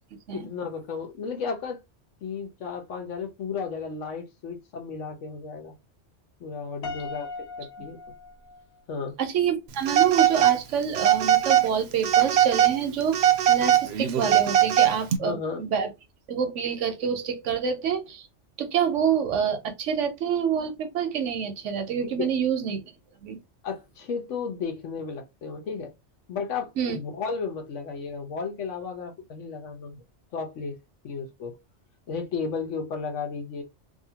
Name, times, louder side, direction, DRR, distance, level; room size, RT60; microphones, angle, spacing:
voice 1, 0.3-1.8 2.2-5.7 6.4-8.0 8.9-9.1 15.2-15.6 22.0-22.3 23.6-25.9 26.3-30.0 30.3-30.8 31.0-31.6 32.1-33.6, left 5 dB, 90° left, 1.2 m, -33 dB
Piano, 6.8-9.1, left 3 dB, 65° left, 0.9 m, -39 dB
voice 2, 9.2-15.9 16.3-18.3 18.6-22.8 23.2-23.4 26.8-27.0, right 7 dB, 85° right, 1.1 m, -27 dB
Telephone, 9.9-10.6 11.0-11.7 12.0-12.8 13.1-15.2, right 11 dB, 70° right, 0.8 m, -20 dB
2.8 x 2.6 x 2.8 m
omnidirectional pair, 1.2 m